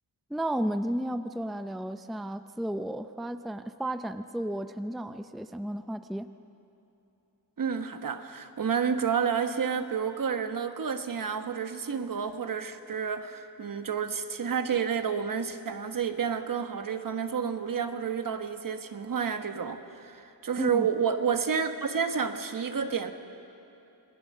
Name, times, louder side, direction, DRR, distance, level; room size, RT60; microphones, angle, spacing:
voice 1, 0.3-6.3 20.6-20.9, right 1 dB, ahead, 9 dB, 0.5 m, -33 dB
voice 2, 7.6-23.1, right 6 dB, 55° right, 8 dB, 1.3 m, -30 dB
27.5 x 20.0 x 6.6 m, 3.0 s
wide cardioid pair, 125°, 39 cm